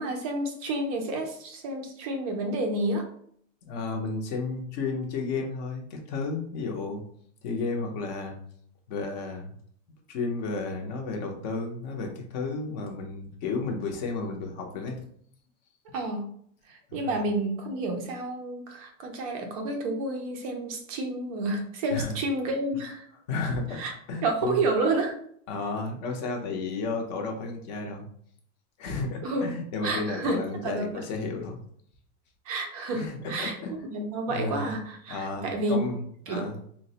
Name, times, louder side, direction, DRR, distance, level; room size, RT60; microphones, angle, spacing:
voice 1, 0.0-3.1 15.9-16.3 16.7-23.1 23.7-23.9 24.2-25.1 29.2-29.5 29.8-31.0 32.5-33.6 33.8-35.9 36.3-36.5, right 2 dB, 30° right, 3 dB, 0.4 m, -30 dB
voice 2, 3.7-7.0 7.4-8.4 8.9-9.5 10.1-15.0 16.9-17.2 21.9-22.1 23.3-23.8 24.1-24.6 25.5-28.1 28.8-31.6 32.9-33.7 34.3-34.7 35.1-36.6, left 3 dB, 35° left, 2 dB, 0.5 m, -32 dB
3.9 x 2.0 x 2.7 m, 0.63 s
supercardioid pair, 170°, 37 cm